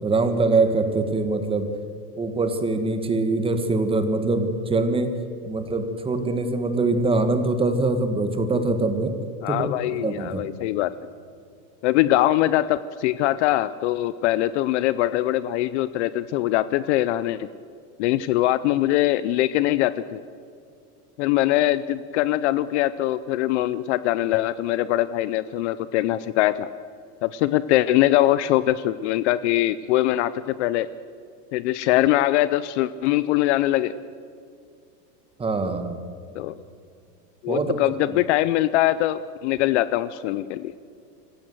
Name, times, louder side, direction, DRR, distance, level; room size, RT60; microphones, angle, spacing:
voice 1, 0.0-1.7 2.2-5.1 5.4-9.1 9.5-10.5 35.4-36.0 37.5-37.7, right 3 dB, 10° right, 8 dB, 1.5 m, -23 dB
voice 2, 9.4-10.9 11.8-17.5 18.0-20.2 21.2-26.7 27.2-30.9 31.5-33.9 36.3-36.6 37.4-40.7, left 14 dB, 45° left, 16 dB, 0.6 m, -22 dB
26.5 x 15.5 x 7.7 m, 2.4 s
supercardioid pair, 150°, 48 cm